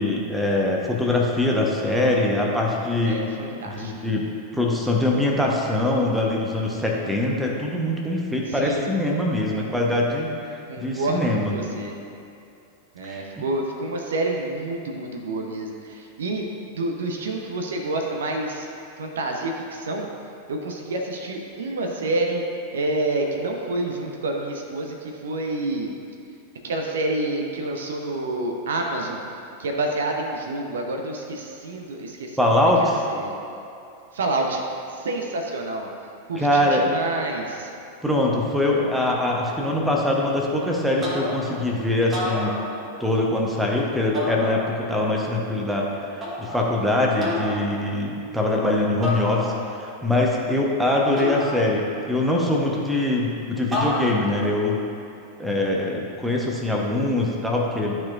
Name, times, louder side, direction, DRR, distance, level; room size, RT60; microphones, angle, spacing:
voice 1, 0.0-3.2 3.7-4.3 4.5-11.5 13.0-13.4 32.4-33.0 36.4-36.8 38.0-42.6 43.0-45.9 46.4-54.8 55.4-58.0, left 1 dB, 5° right, -2 dB, 0.9 m, -23 dB
voice 2, 3.0-3.9 8.5-8.9 9.5-9.7 10.7-11.9 12.9-18.7 19.0-20.1 20.5-22.4 22.7-25.9 26.6-29.2 29.6-32.4 32.8-33.3 34.1-34.6 34.9-35.9 36.3-37.7, right 2 dB, 65° right, 2 dB, 0.7 m, -28 dB
sound 1, 41.0-41.6 42.0-43.2 44.1-45.0 46.2-46.7 47.2-47.7 49.0-49.9 51.2-52.1 53.7-54.5, left 1 dB, 20° right, 1.3 m, -30 dB
11.5 x 4.5 x 2.4 m, 2.7 s
figure-of-eight pair, 90°, 0 cm